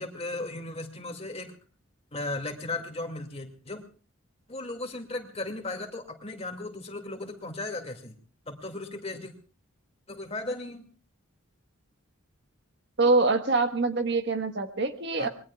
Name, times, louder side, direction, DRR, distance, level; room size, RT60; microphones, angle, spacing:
voice 1, 0.0-1.5 2.1-3.8 4.5-8.1 8.5-9.3 10.1-10.9 15.2-15.3, left 2 dB, 30° left, 4 dB, 2.4 m, -36 dB
voice 2, 13.0-15.3, right 3 dB, 55° right, 6 dB, 1.5 m, -24 dB
26.0 x 21.5 x 2.4 m, 0.39 s
head